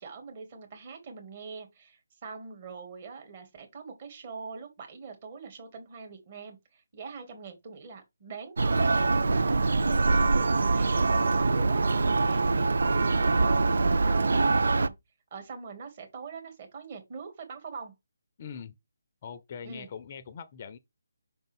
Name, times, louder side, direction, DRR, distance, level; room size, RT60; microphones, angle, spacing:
voice 1, 0.0-14.9 15.3-17.9 19.6-19.9, right 5 dB, 35° right, 2.4 m, -44 dB
Church bell, 8.6-14.9, right 3 dB, 65° right, 0.5 m, -24 dB
voice 2, 18.4-18.7 19.2-20.8, left 7 dB, 35° left, 0.6 m, -42 dB
5.5 x 5.2 x 3.6 m
figure-of-eight pair, 150°, 0 cm